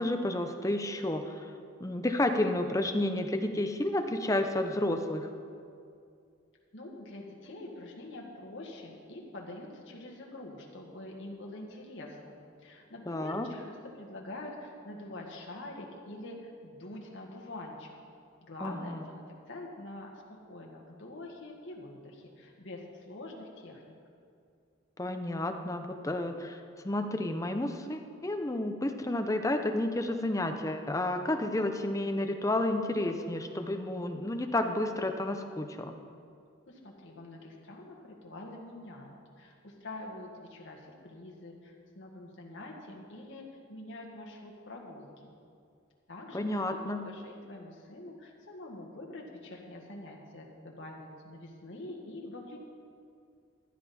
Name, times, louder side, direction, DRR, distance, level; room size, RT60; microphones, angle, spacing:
voice 1, 0.0-1.5 1.8-5.3 13.1-13.5 18.6-19.0 25.0-35.9 46.3-47.1, left 1 dB, 15° left, 6 dB, 0.6 m, -31 dB
voice 2, 6.7-17.9 18.4-19.2 19.5-23.9 36.7-45.4 46.1-52.6, left 2 dB, 65° left, -1 dB, 1.7 m, -45 dB
14.5 x 11.0 x 4.3 m, 2.3 s
head